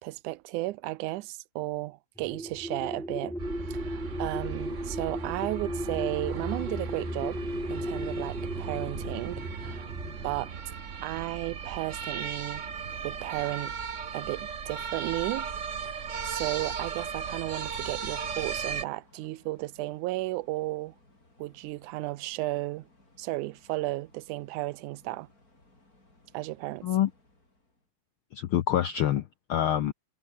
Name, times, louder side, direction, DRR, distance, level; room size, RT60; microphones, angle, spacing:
voice 1, 0.0-3.4 3.7-7.4 7.7-9.9 10.2-10.5 11.0-12.7 13.0-13.8 14.1-15.5 15.8-21.0 21.4-22.9 23.2-25.3 26.3-26.9, right 19 dB, 90° right, 2.1 m, -34 dB
sound 1, 2.2-10.5, equal, ahead, 2.2 m, -36 dB
sound 2, 3.4-18.9, right 6 dB, 50° right, 0.8 m, -37 dB
sound 3, 11.9-27.9, left 2 dB, 25° left, 7.4 m, -62 dB
voice 2, 28.3-29.9, left 11 dB, 75° left, 1.2 m, -26 dB
omnidirectional pair, 3.4 m